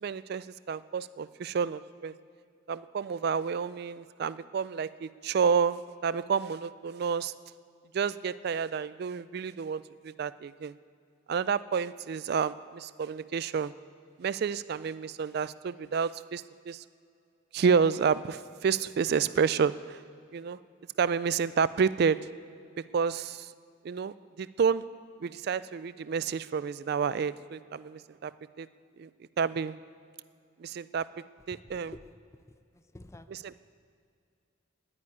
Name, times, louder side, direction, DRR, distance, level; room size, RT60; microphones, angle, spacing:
voice 1, 0.0-2.1 2.7-7.3 7.9-10.7 11.3-13.7 14.2-16.8 17.5-20.0 20.3-20.6 21.0-22.2 22.9-23.5 23.8-24.8 25.2-28.3 28.6-28.7 29.0-29.1 29.4-29.7 30.6-31.1 31.5-31.9 33.3-33.6, right 6 dB, 55° right, 16 dB, 0.3 m, -29 dB
voice 2, 31.5-33.6, left 1 dB, 15° left, 11 dB, 0.4 m, -51 dB
11.0 x 9.4 x 9.9 m, 2.3 s
head